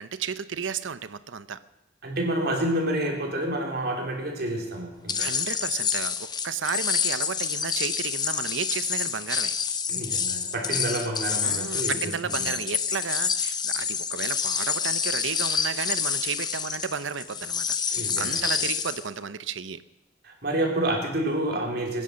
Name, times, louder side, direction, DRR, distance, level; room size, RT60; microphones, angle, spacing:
voice 1, 0.0-1.6 5.2-9.5 11.4-19.8, right 6 dB, 85° right, 14 dB, 0.7 m, -33 dB
voice 2, 2.0-5.3 9.9-12.5 17.9-18.5 20.2-22.0, right 1 dB, 55° right, 1 dB, 3.4 m, -29 dB
sound 1, 5.1-19.1, left 6 dB, 20° left, 0.7 m, -28 dB
21.5 x 10.0 x 6.5 m, 0.96 s
head